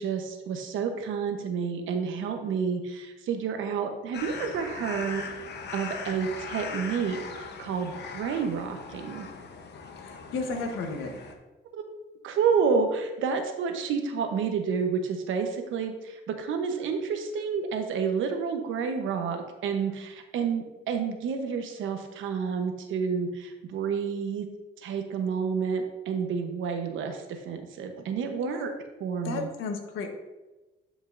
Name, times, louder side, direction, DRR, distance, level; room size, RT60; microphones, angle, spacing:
voice 1, 0.0-5.3 5.7-9.3 11.7-11.8 12.2-24.5 24.8-28.7 29.0-29.5, right 6 dB, 80° right, 6 dB, 1.0 m, -29 dB
sound 1, 4.1-11.3, left 5 dB, 60° left, 1.0 m, -40 dB
voice 2, 10.0-11.1 29.2-30.1, left 3 dB, 85° left, 4 dB, 1.2 m, -33 dB
11.0 x 5.3 x 2.6 m, 1.1 s
cardioid pair, 90°, 20 cm